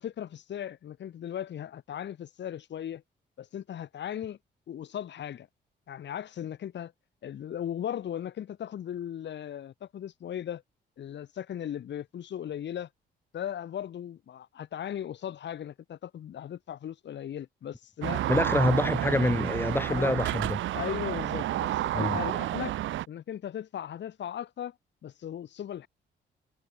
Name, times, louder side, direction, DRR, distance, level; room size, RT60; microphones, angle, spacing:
voice 1, 0.0-3.0 3.4-4.4 4.7-5.5 5.9-6.9 7.2-10.6 11.0-12.9 13.3-18.5 19.9-20.2 20.7-22.7 23.1-24.8 25.0-25.9, left 10 dB, 65° left, 3.7 m, -37 dB
sound 1, 18.0-23.1, right 14 dB, 75° right, 1.0 m, -30 dB
voice 2, 18.3-20.6 21.9-22.2, left 1 dB, 10° left, 3.4 m, -26 dB
cardioid pair, 90°, 20 cm